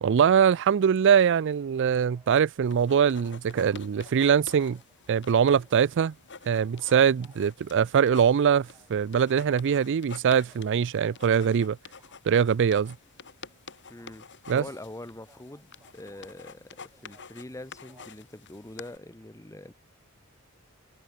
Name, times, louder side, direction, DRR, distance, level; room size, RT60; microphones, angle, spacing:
voice 1, 0.0-4.8 5.1-6.1 6.5-11.8 12.3-12.9 14.5-14.6, right 7 dB, 55° right, 0.4 m, -22 dB
sound 1, 2.0-18.2, right 2 dB, 15° right, 6.7 m, -65 dB
sound 2, 2.6-19.0, left 5 dB, 55° left, 6.5 m, -49 dB
voice 2, 13.9-14.3 14.5-19.7, left 1 dB, 15° left, 1.2 m, -43 dB
head